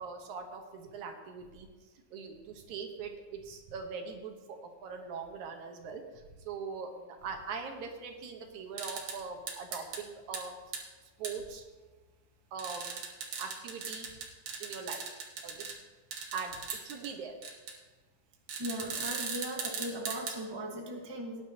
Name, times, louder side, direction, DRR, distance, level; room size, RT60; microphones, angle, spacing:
voice 1, 0.0-1.7 2.1-10.6 11.2-11.6 12.5-13.0 13.4-14.1 14.6-15.0 15.4-15.8 16.3-17.4, right 5 dB, 80° right, 4 dB, 2.6 m, -41 dB
sound 1, 8.8-9.2 9.5-10.0 10.3-10.4 10.7-10.8 11.2-11.3 12.6-15.8 16.1-17.1 17.4-17.7 18.5-20.4, right 5 dB, 60° right, 2.2 m, -38 dB
voice 2, 18.6-21.4, right 1 dB, 35° right, 1 dB, 0.4 m, -38 dB
18.5 x 10.0 x 2.9 m, 1.3 s
omnidirectional pair, 3.4 m